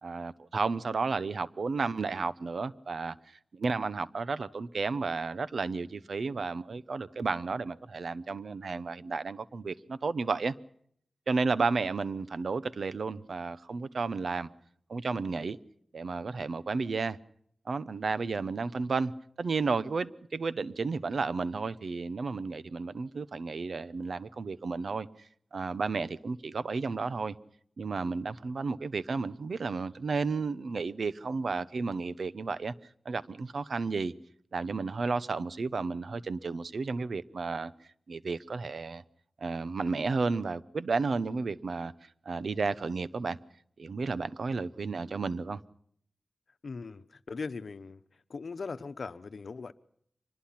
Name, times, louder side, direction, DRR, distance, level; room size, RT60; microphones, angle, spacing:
voice 1, 0.0-3.2 3.5-10.5 11.3-14.5 14.9-15.6 15.9-17.2 17.7-19.1 19.4-25.1 25.5-27.3 27.8-32.7 33.0-34.1 34.5-37.7 38.1-39.0 39.4-41.9 42.3-43.4 43.8-45.6, right 4 dB, 80° right, 0.8 m, -32 dB
voice 2, 46.6-48.0 48.3-49.7, left 4 dB, 75° left, 1.0 m, -39 dB
24.5 x 20.5 x 5.8 m
wide cardioid pair, 95°, 0 cm